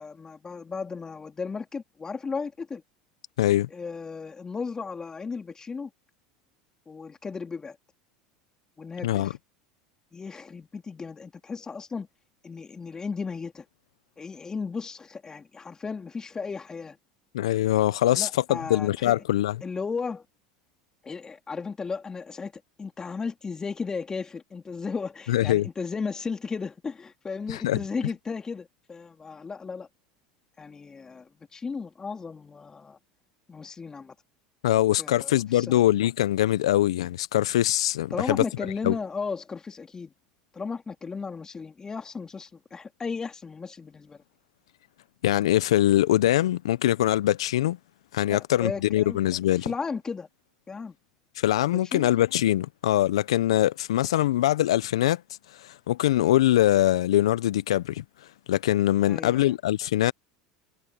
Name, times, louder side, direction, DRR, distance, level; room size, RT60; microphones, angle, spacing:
voice 1, 0.0-2.8 3.7-5.9 6.9-7.8 8.8-9.4 10.1-12.1 12.4-13.6 14.2-17.0 18.1-19.2 19.6-20.2 21.0-29.9 30.6-33.0 33.5-34.1 35.0-35.8 38.1-40.1 40.5-44.2 48.3-49.2 49.6-50.3 50.7-50.9 51.7-52.1 59.1-59.5, left 5 dB, 20° left, 3.1 m, -35 dB
voice 2, 3.4-3.7 9.0-9.3 17.3-19.5 25.3-25.7 27.5-27.8 34.6-38.4 38.8-38.9 45.2-47.8 48.1-49.7 51.4-55.2 55.6-58.0 58.5-60.1, left 13 dB, 75° left, 1.1 m, -23 dB
hypercardioid pair, 85°, 3 cm